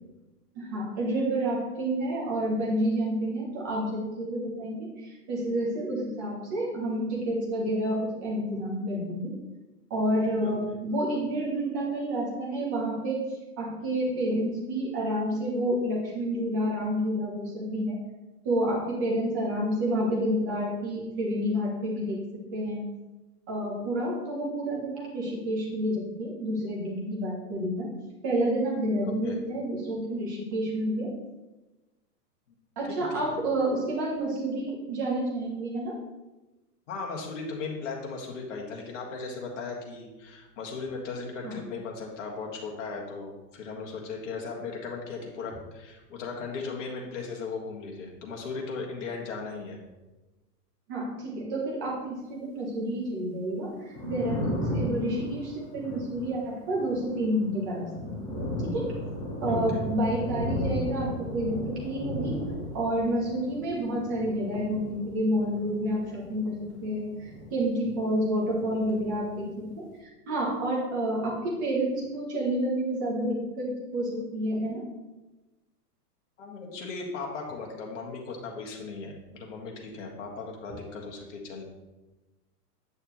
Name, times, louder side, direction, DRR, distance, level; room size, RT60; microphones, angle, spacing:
voice 1, 0.5-9.3 9.9-13.2 13.6-18.0 18.4-22.2 22.5-22.9 23.5-27.9 28.2-31.1 32.8-36.0 41.4-41.6 50.9-58.1 58.6-58.9 59.4-62.4 62.7-74.8, right 1 dB, 15° right, -3 dB, 0.7 m, -29 dB
voice 2, 10.4-10.8 29.0-29.4 33.1-33.4 36.9-49.8 59.5-59.8 76.4-81.6, left 4 dB, 50° left, 0 dB, 1.7 m, -37 dB
Thunder, 53.7-68.2 68.4-69.7, left 1 dB, 10° left, 1.0 m, -35 dB
8.6 x 6.4 x 3.1 m, 1.1 s
supercardioid pair, 180°, 48 cm